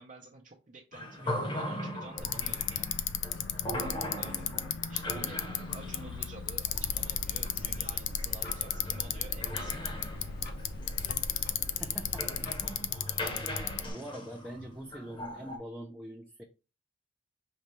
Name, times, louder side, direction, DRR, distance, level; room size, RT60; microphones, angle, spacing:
voice 1, 0.0-3.0 3.8-4.5 4.9-9.9, right 3 dB, 40° right, -2 dB, 0.7 m, -50 dB
sound 1, 0.9-15.6, equal, 25° left, 1.0 m, -40 dB
Bicycle, 2.2-13.9, left 10 dB, 70° left, 0.4 m, -35 dB
sound 2, 6.7-12.7, left 1 dB, 50° left, 0.8 m, -42 dB
voice 2, 11.8-12.3 13.8-16.4, right 1 dB, 5° right, 0 dB, 0.5 m, -43 dB
5.2 x 3.2 x 3.1 m, 0.30 s
head